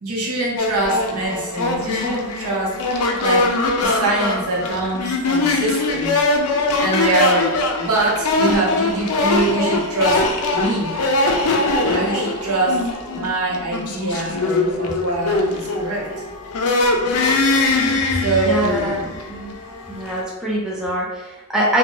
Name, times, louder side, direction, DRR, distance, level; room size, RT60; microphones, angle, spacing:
voice 1, 0.0-3.5 3.8-6.1 6.8-10.2 10.5-11.0 11.8-12.8 13.1-16.1 18.1-19.1, right 2 dB, 75° right, -3 dB, 0.8 m, -23 dB
sound 1, 0.6-20.2, left 2 dB, 75° left, 0.4 m, -22 dB
voice 2, 17.9-19.6 19.9-21.8, right 1 dB, 5° right, -5 dB, 0.5 m, -24 dB
2.6 x 2.2 x 2.9 m, 1.1 s
head